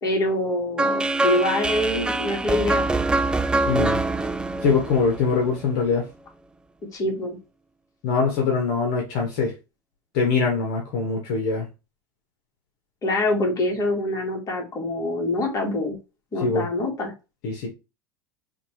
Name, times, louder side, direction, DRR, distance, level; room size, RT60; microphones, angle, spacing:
voice 1, 0.0-2.9 6.9-7.4 13.0-16.0 16.3-17.1, left 1 dB, 30° left, 2.1 m, -25 dB
sound 1, 0.8-5.8, right 2 dB, 10° right, 0.4 m, -24 dB
voice 2, 3.6-4.0 4.6-6.1 8.0-9.5 10.1-11.7 16.4-16.6 17.4-17.7, left 5 dB, 55° left, 1.3 m, -23 dB
5.6 x 2.7 x 3.3 m
figure-of-eight pair, 80°, 12 cm